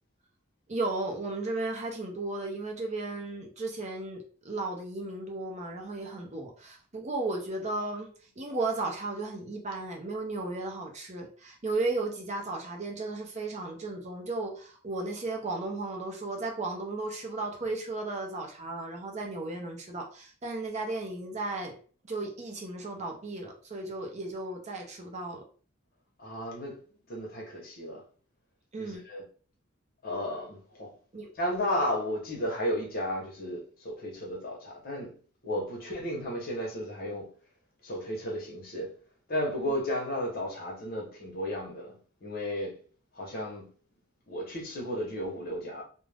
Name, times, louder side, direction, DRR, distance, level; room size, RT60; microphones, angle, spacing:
voice 1, 0.7-8.1 8.4-21.7 22.1-25.4 28.7-29.0 31.1-31.3 35.6-35.7 39.6-39.7, right 2 dB, 35° right, 0.6 m, -35 dB
voice 2, 26.2-26.8 27.1-28.0 28.8-29.2 30.0-30.9 31.4-35.1 35.4-37.3 37.8-38.9 39.3-42.8 43.1-43.7 44.3-45.8, equal, 50° left, 0.9 m, -33 dB
2.4 x 2.1 x 3.3 m
head